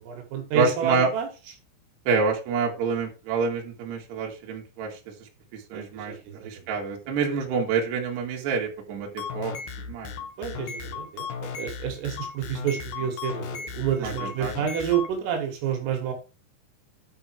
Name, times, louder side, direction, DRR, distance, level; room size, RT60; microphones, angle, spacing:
voice 1, 0.0-1.3 5.7-6.6 10.4-16.1, right 8 dB, 75° right, 3 dB, 4.4 m, -29 dB
voice 2, 0.5-1.1 2.1-5.0 5.5-9.6 9.9-10.1 14.0-14.6, right 5 dB, 60° right, 0 dB, 4.0 m, -27 dB
sound 1, 9.0-15.1, left 6 dB, 80° left, 2.0 m, -36 dB
11.0 x 5.2 x 4.6 m, 0.32 s
omnidirectional pair, 6.0 m